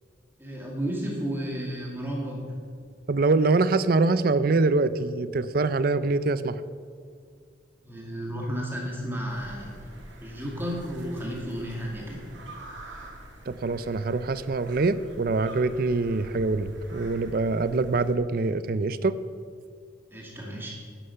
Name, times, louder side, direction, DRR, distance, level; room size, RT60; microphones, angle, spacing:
voice 1, 0.4-2.5 7.8-9.8 10.2-12.2 20.1-20.7, equal, 10° right, -2 dB, 2.1 m, -32 dB
voice 2, 3.1-6.6 13.5-19.1, right 3 dB, 50° right, 14 dB, 0.5 m, -24 dB
sound 1, 9.3-18.1, right 1 dB, 80° right, 2.4 m, -46 dB
11.0 x 10.0 x 5.7 m, 2.1 s
head